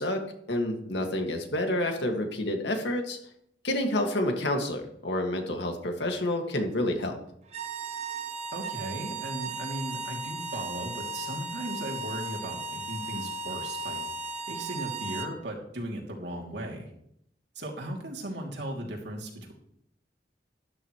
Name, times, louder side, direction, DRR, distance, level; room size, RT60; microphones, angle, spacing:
voice 1, 0.0-3.2 3.6-7.2, left 1 dB, 80° left, 3 dB, 2.1 m, -29 dB
sound 1, 7.5-15.4, right 3 dB, 40° right, 1.1 m, -36 dB
voice 2, 8.5-14.0 14.5-16.9 17.5-19.5, right 1 dB, 75° right, -1 dB, 2.9 m, -37 dB
12.5 x 12.0 x 3.2 m, 0.73 s
head